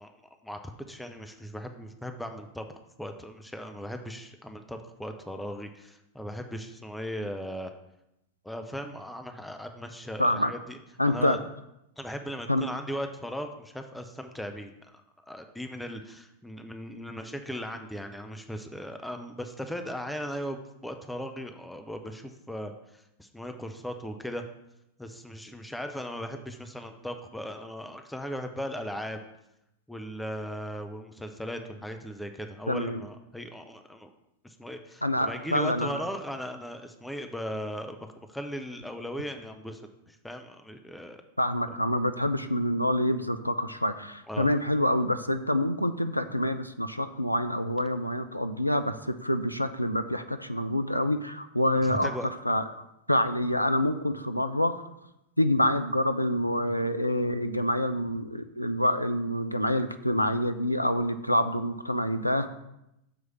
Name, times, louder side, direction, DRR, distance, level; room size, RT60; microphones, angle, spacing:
voice 1, 0.0-2.7 3.0-7.7 8.4-10.8 11.1-11.4 12.0-24.4 25.0-29.2 29.9-34.1 34.4-38.0 38.3-41.2 44.3-44.5 51.8-52.3, equal, 5° left, 5 dB, 0.5 m, -38 dB
voice 2, 10.2-10.5 11.0-11.4 12.5-12.7 32.7-33.0 35.0-36.0 41.4-52.1 52.5-54.8 55.4-62.5, left 1 dB, 90° left, 9 dB, 0.3 m, -27 dB
6.7 x 3.2 x 5.8 m, 0.85 s
figure-of-eight pair, 90°, 0 cm